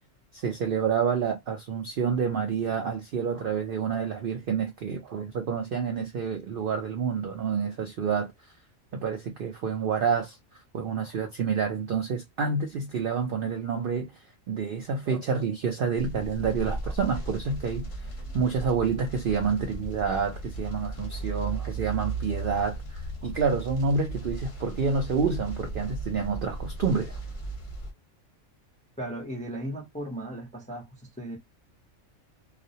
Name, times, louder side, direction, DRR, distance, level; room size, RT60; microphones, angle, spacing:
voice 1, 0.3-8.3 8.9-10.4 10.7-14.1 14.5-17.9 18.3-27.2, right 5 dB, 65° right, 0.5 m, -28 dB
sound 1, 16.0-27.9, right 2 dB, 40° left, 0.8 m, -36 dB
voice 2, 29.0-31.4, right 1 dB, 10° left, 0.4 m, -36 dB
2.4 x 2.0 x 2.6 m
omnidirectional pair, 1.4 m